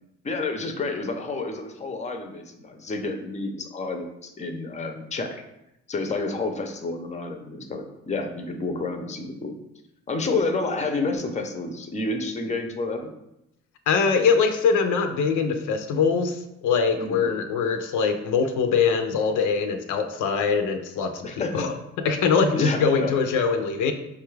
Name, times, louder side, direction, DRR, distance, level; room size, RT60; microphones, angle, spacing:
voice 1, 0.2-5.4 5.9-9.5 10.1-13.1 17.0-17.2 21.2-21.7 22.5-23.1, left 3 dB, 25° left, 5 dB, 0.5 m, -29 dB
voice 2, 13.9-21.7 22.0-23.9, left 5 dB, 80° left, 6 dB, 0.5 m, -23 dB
5.3 x 2.3 x 3.2 m, 0.85 s
cardioid pair, 90°, 30 cm